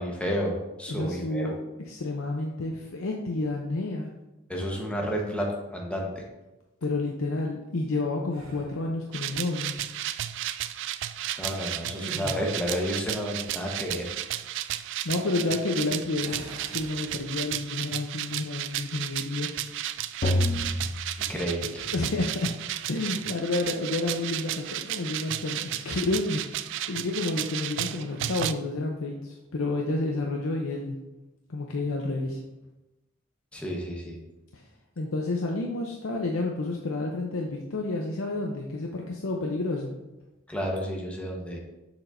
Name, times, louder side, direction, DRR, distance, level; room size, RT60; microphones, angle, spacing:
voice 1, 0.0-1.5 4.5-6.2 11.4-14.1 21.3-21.9 33.5-34.2 40.5-41.6, equal, 5° left, -1 dB, 1.1 m, -31 dB
voice 2, 0.9-1.6 1.9-4.1 6.8-9.7 15.0-19.5 21.9-22.5 22.8-31.0 31.5-32.4 34.5-34.6 35.0-39.9, left 2 dB, 90° left, 0 dB, 0.7 m, -30 dB
sound 1, 8.3-8.9 11.9-13.0 16.2-17.7 18.1-18.3 20.4-20.9, equal, 85° right, 1.5 m, -43 dB
sound 2, 9.1-28.5, right 12 dB, 65° right, 0.3 m, -33 dB
sound 3, 20.2-22.2, left 1 dB, 40° left, 0.6 m, -29 dB
6.9 x 6.0 x 2.6 m, 1.0 s
head